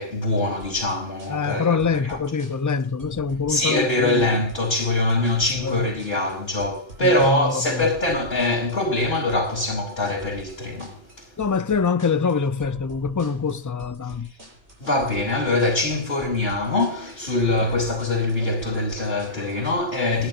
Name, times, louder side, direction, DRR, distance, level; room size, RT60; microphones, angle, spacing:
voice 1, 0.0-2.2 3.5-11.3 14.8-20.3, left 2 dB, 55° left, 3.2 m, -23 dB
sound 1, 0.6-19.8, right 1 dB, 65° right, 8.2 m, -45 dB
voice 2, 1.3-4.3 5.6-5.8 7.0-7.9 11.4-14.3 20.1-20.3, left 5 dB, 25° left, 0.4 m, -24 dB
29.0 x 10.5 x 2.6 m
omnidirectional pair, 1.2 m